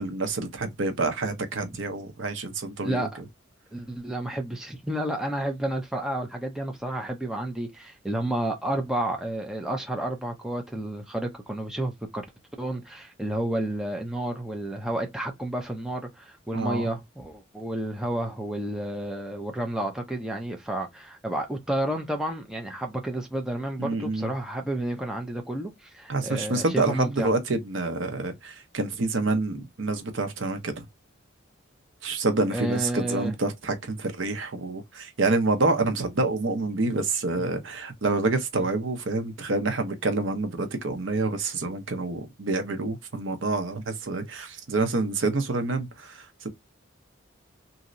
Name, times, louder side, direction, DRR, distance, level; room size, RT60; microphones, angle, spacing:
voice 1, 0.0-3.1 16.5-16.9 23.8-24.3 26.1-30.8 32.0-46.5, right 3 dB, 65° right, 0.7 m, -27 dB
voice 2, 2.8-3.1 3.7-12.3 12.6-27.3 32.5-33.3 37.4-37.5 38.6-38.7, right 1 dB, 5° right, 0.5 m, -31 dB
3.0 x 2.7 x 2.5 m
head